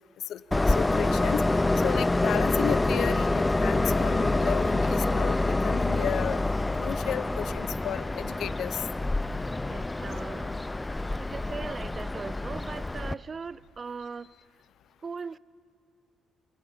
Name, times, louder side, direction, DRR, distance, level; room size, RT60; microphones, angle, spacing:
Train, 0.5-13.1, left 2 dB, 15° left, 0.5 m, -27 dB
voice 1, 0.7-1.4 1.8-6.4 6.8-8.8, left 10 dB, 70° left, 0.7 m, -33 dB
voice 2, 9.7-10.6 11.2-14.3 15.0-15.4, right 5 dB, 35° right, 0.5 m, -39 dB
29.5 x 24.0 x 5.6 m
cardioid pair, 90°, 0 cm